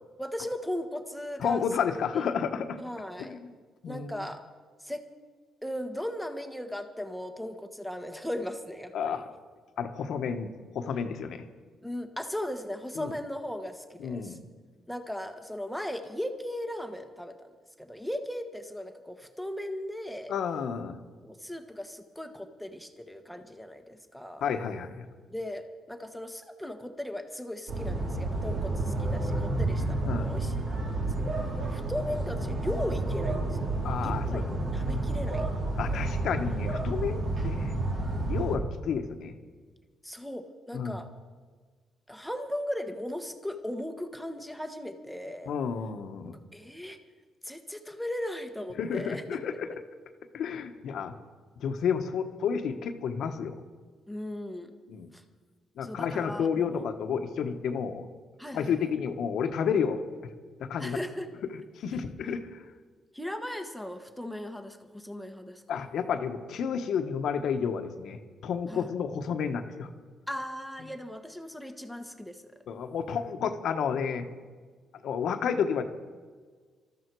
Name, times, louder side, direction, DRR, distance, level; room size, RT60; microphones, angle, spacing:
voice 1, 0.2-1.6 2.2-2.3 2.8-3.4 3.9-4.4 4.8-5.1 5.6-9.2 11.8-14.4 14.9-17.4 17.8-20.3 21.2-24.4 25.3-34.4 34.7-35.5 35.9-36.1 37.0-37.4 40.0-41.1 42.1-45.5 46.5-47.0 47.4-49.4 54.1-54.7 55.1-55.2 55.8-56.9 58.4-58.8 60.8-61.3 63.1-65.6 68.7-68.9 70.3-72.6, left 1 dB, ahead, 6 dB, 1.4 m, -37 dB
voice 2, 1.4-2.8 3.2-3.4 3.8-4.2 8.9-9.2 9.8-11.4 13.0-13.1 14.0-14.4 20.3-21.0 24.4-25.0 30.0-30.3 33.8-34.4 35.8-37.8 38.2-39.3 40.7-40.9 45.5-46.4 48.8-49.7 50.3-51.1 51.6-53.5 54.9-55.1 55.8-58.1 58.5-60.0 60.6-61.0 61.5-62.6 65.7-69.9 72.7-74.3 75.0-75.9, left 7 dB, 70° left, 7 dB, 1.2 m, -31 dB
sound 1, 27.7-38.6, right 2 dB, 60° right, 3.8 m, -30 dB
19.5 x 13.5 x 4.7 m, 1.5 s
cardioid pair, 90°, 0 cm